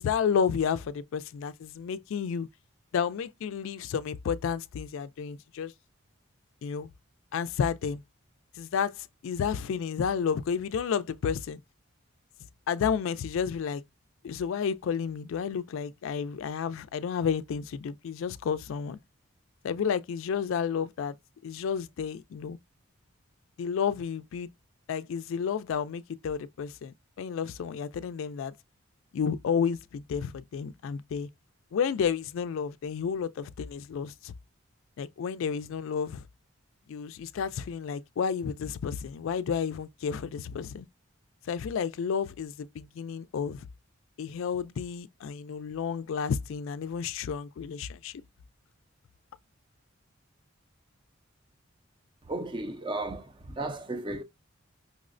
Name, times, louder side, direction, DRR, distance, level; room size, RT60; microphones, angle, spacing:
voice 1, 0.0-2.5 2.9-5.7 6.6-6.9 7.3-8.0 8.6-11.6 12.7-13.8 14.2-19.0 19.6-21.2 21.4-22.6 23.6-24.5 24.9-28.5 29.1-31.3 31.7-34.3 35.0-36.2 36.9-40.9 41.4-43.7 44.2-48.2, left 7 dB, 65° left, 0.3 m, -31 dB
voice 2, 52.2-54.2, right 2 dB, 20° right, 0.4 m, -34 dB
5.3 x 2.1 x 2.5 m
head